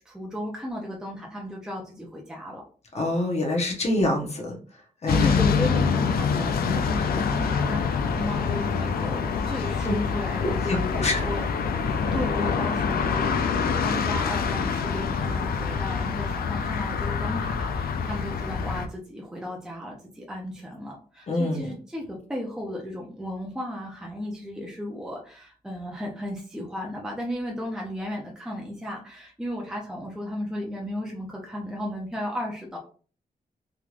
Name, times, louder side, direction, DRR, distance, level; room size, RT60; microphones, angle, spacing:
voice 1, 0.1-2.6 5.1-11.4 12.1-32.8, left 1 dB, 5° right, -1 dB, 0.6 m, -34 dB
voice 2, 2.9-4.6 5.0-5.4 9.8-9.9 10.9-11.3 21.3-21.7, left 1 dB, 45° left, 0 dB, 1.0 m, -26 dB
sound 1, 5.1-18.9, left 5 dB, 75° left, 0.4 m, -26 dB
3.6 x 3.0 x 2.4 m, 0.40 s
wide cardioid pair, 155°, 16 cm